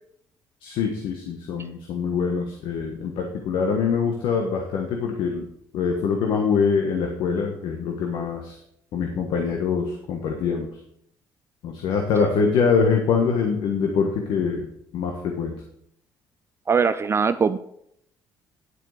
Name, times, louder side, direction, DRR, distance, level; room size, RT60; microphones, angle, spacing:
voice 1, 0.6-5.5 5.7-8.6 8.9-10.7 11.6-14.7 14.9-15.5, left 5 dB, 80° left, 2 dB, 1.4 m, -24 dB
voice 2, 16.7-17.6, right 5 dB, 30° right, 11 dB, 0.4 m, -21 dB
9.9 x 4.6 x 6.5 m, 0.72 s
cardioid pair, 80°, 8 cm